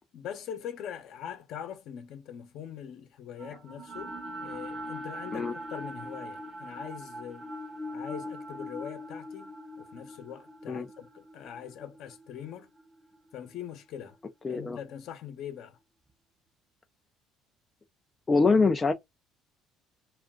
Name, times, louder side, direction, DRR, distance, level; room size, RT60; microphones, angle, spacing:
voice 1, 0.1-7.5 7.9-12.7 13.3-14.2 14.5-15.8, left 9 dB, 65° left, 0.8 m, -42 dB
sound 1, 3.4-13.6, equal, 25° right, 0.8 m, -41 dB
voice 2, 14.4-14.8 18.3-18.9, left 4 dB, 25° left, 0.4 m, -24 dB
2.4 x 2.3 x 3.6 m
cardioid pair, 115°, 0 cm